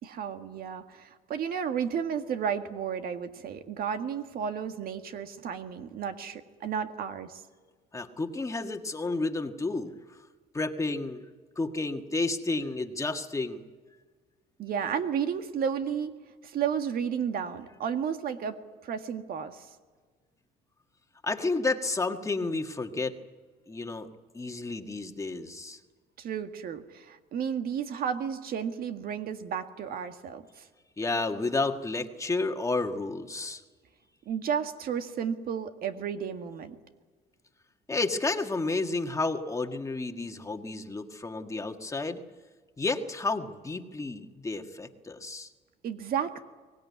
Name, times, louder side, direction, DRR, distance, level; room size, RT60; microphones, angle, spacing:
voice 1, 0.0-7.4 14.6-16.1 16.4-19.7 26.2-30.7 34.2-36.7 45.8-46.4, right 7 dB, 60° right, 7 dB, 1.8 m, -32 dB
voice 2, 7.9-10.2 10.5-11.2 11.5-13.7 21.2-23.2 23.7-24.1 24.3-25.8 31.0-33.6 37.9-42.2 42.8-45.5, left 3 dB, 20° left, 5 dB, 1.7 m, -31 dB
23.5 x 18.0 x 9.6 m, 1.4 s
cardioid pair, 110°, 17 cm